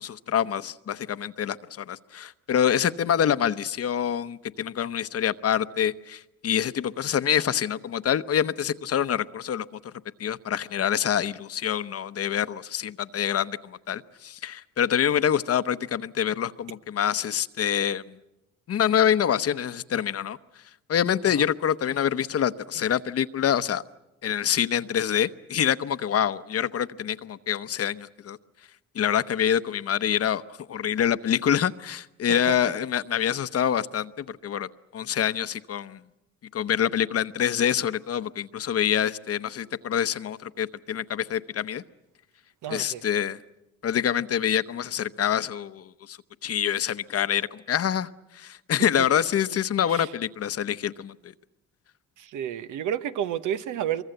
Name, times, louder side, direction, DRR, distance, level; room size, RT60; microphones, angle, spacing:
voice 1, 0.0-9.9 10.2-18.2 18.7-20.4 20.9-23.8 24.2-28.4 28.9-30.4 30.7-36.0 36.5-41.8 42.7-43.4 43.8-48.1 48.3-51.3, left 9 dB, 50° left, 0.9 m, -26 dB
voice 2, 32.3-32.6 42.6-43.0 49.0-49.2 49.5-49.6 49.9-50.1 52.2-54.0, right 10 dB, 80° right, 1.1 m, -31 dB
24.0 x 23.5 x 7.9 m
cardioid pair, 90°, 30 cm